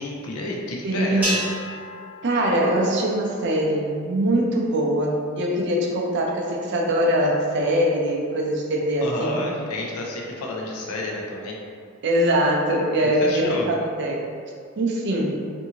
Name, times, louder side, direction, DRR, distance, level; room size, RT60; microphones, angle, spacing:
voice 1, 0.0-1.3 9.0-11.6 13.2-13.7, left 2 dB, 80° left, -1 dB, 0.4 m, -30 dB
voice 2, 0.8-1.4 2.2-9.4 12.0-14.3 14.8-15.4, right 1 dB, 50° right, -1 dB, 0.4 m, -22 dB
sound 1, 1.2-3.7, right 1 dB, 5° right, 0.7 m, -32 dB
2.6 x 2.6 x 2.7 m, 2.2 s
head